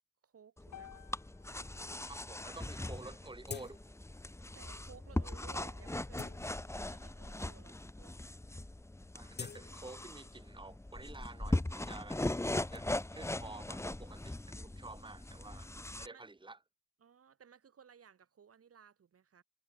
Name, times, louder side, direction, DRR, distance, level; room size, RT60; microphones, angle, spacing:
voice 1, 0.2-1.1 3.0-3.3 4.5-8.5 16.0-16.3 17.0-19.4, right 7 dB, 50° right, 7.9 m, -60 dB
sound 1, 0.6-16.1, left 1 dB, 10° left, 2.1 m, -40 dB
sound 2, 0.7-4.9, left 11 dB, 70° left, 4.4 m, -59 dB
voice 2, 2.1-3.8 9.1-12.2 12.6-16.6, right 2 dB, 15° right, 3.9 m, -50 dB
sound 3, 3.4-4.1 4.5-4.7 5.3-5.5 5.9-7.0 7.7-7.8 8.1-8.4 8.7-10.5 10.8-12.8, left 5 dB, 35° left, 2.1 m, -50 dB
cardioid pair, 90°, 30 cm